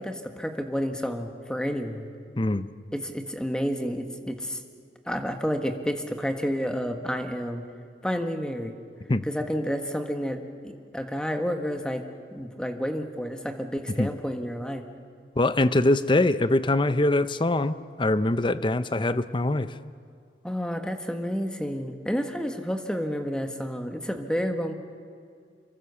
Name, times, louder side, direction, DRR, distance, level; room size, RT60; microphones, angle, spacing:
voice 1, 0.0-2.1 2.9-4.6 5.1-7.6 8.0-8.7 9.2-10.4 10.6-12.0 12.3-14.8 20.4-24.7, equal, 5° left, 5 dB, 1.6 m, -30 dB
voice 2, 2.4-2.7 9.1-9.2 14.0-14.1 15.4-19.7, left 2 dB, 30° left, 13 dB, 0.7 m, -23 dB
26.5 x 23.0 x 7.0 m, 2.2 s
head